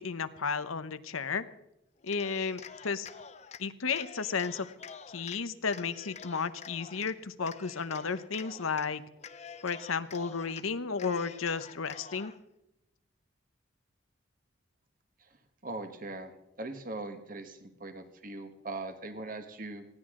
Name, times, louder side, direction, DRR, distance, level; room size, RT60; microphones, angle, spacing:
voice 1, 0.0-1.4 2.0-3.1 3.6-4.7 5.1-9.0 9.6-12.3, left 5 dB, 90° left, 12 dB, 0.9 m, -33 dB
Cheering, 2.0-3.6 3.9-5.4 5.7-7.1 7.5-8.9 9.2-10.6 11.0-12.4, left 6 dB, 35° left, 0.7 m, -48 dB
voice 2, 15.6-16.3 16.6-19.8, right 2 dB, 40° right, 7 dB, 1.4 m, -40 dB
19.5 x 16.0 x 3.8 m, 0.87 s
head